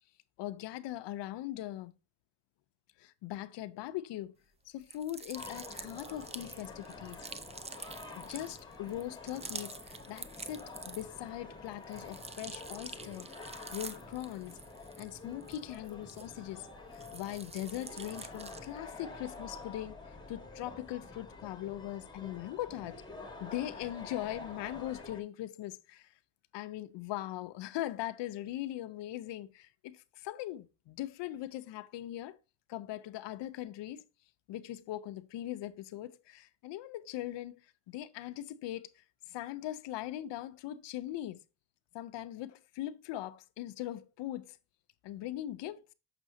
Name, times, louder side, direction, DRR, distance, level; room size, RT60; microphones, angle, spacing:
voice 1, 0.4-1.9 3.0-4.3 4.7-7.2 8.2-13.3 13.7-14.6 15.0-23.0 23.4-26.1 26.5-32.4 32.7-34.0 34.5-37.6 37.9-41.4 41.9-44.6 45.0-45.8, left 13 dB, 80° left, 0.6 m, -40 dB
sound 1, 4.8-11.3 11.7-16.6 16.9-18.8, right 4 dB, 15° right, 0.3 m, -47 dB
sound 2, 5.3-25.2, left 3 dB, 10° left, 1.4 m, -48 dB
6.4 x 6.1 x 2.6 m
cardioid pair, 105°, 42 cm